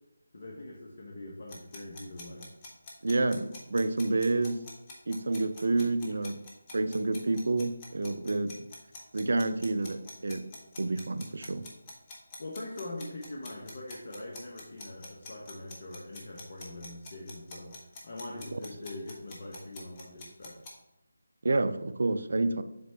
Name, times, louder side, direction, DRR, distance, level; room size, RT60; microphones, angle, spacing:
voice 1, 0.3-2.5 12.4-17.8 18.0-20.6, left 1 dB, 50° left, -2 dB, 1.0 m, -42 dB
sound 1, 1.5-20.7, left 3 dB, 25° left, 1.1 m, -46 dB
voice 2, 3.0-4.6 5.1-6.4 6.7-8.7 9.1-10.5 10.8-11.7 18.5-18.6 21.4-22.6, right 2 dB, 60° right, 12 dB, 0.4 m, -29 dB
7.5 x 4.5 x 2.8 m, 0.89 s
figure-of-eight pair, 155°, 0 cm